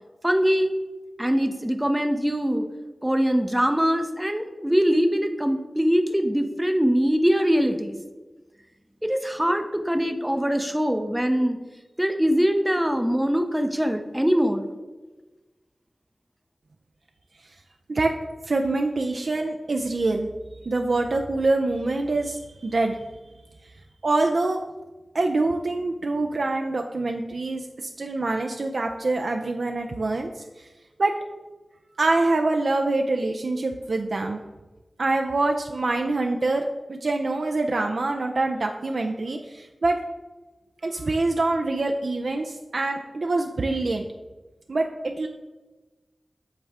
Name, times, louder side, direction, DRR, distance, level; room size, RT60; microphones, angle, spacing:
voice 1, 0.2-0.7 1.2-2.7 3.0-7.9 9.0-11.6 12.0-14.7, equal, 10° right, 6 dB, 0.5 m, -22 dB
voice 2, 18.4-20.3 20.6-23.1 24.0-24.6 25.1-30.4 31.0-31.1 32.0-34.4 35.0-40.0 40.8-44.0 44.7-45.3, right 2 dB, 65° right, 3 dB, 0.3 m, -25 dB
7.9 x 3.6 x 3.4 m, 1.2 s
wide cardioid pair, 55°, 0 cm